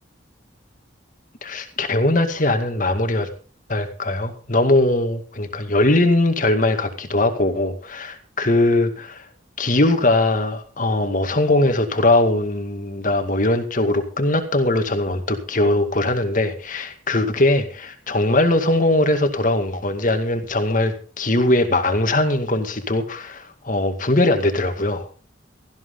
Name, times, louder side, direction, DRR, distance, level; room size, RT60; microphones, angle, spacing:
voice 1, 1.4-3.3 3.7-9.3 9.6-25.0, left 2 dB, 45° left, 7 dB, 2.1 m, -20 dB
17.0 x 14.5 x 3.9 m, 0.36 s
head